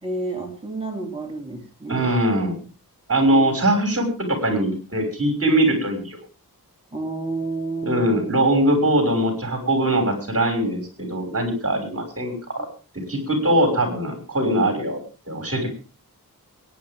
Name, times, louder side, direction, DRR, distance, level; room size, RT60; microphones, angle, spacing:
voice 1, 0.0-2.2 3.2-3.6 6.9-8.3, right 3 dB, 15° right, -1 dB, 3.6 m, -30 dB
voice 2, 1.9-2.6 3.1-6.2 7.8-12.7 13.1-15.0 15.3-15.7, right 1 dB, 40° right, 3 dB, 6.1 m, -21 dB
23.5 x 10.0 x 3.7 m, 0.34 s
wide cardioid pair, 100°, 37 cm